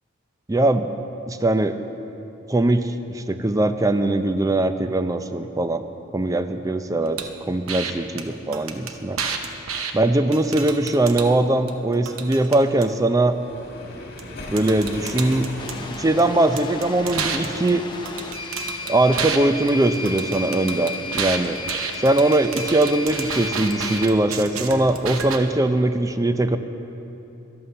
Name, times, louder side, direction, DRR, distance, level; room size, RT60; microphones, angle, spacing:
voice 1, 0.5-0.9 1.3-1.8 2.5-5.8 6.1-9.2 9.9-13.4 14.5-15.5 15.7-17.8 18.9-21.6 22.0-26.6, right 2 dB, 15° right, 9 dB, 0.5 m, -21 dB
sound 1, 7.2-7.3 7.7-7.9 8.2-8.3 8.5-9.9 10.3-11.3 11.7-12.9 14.2-14.3 14.6-16.2 16.6-19.4 19.7-25.4, right 6 dB, 90° right, 0.9 m, -30 dB
Waves surf, 13.2-16.5, left 2 dB, 50° left, 1.9 m, -37 dB
sound 2, 15.6-24.0, left 3 dB, 20° left, 0.8 m, -34 dB
11.5 x 11.0 x 6.7 m, 2.9 s
head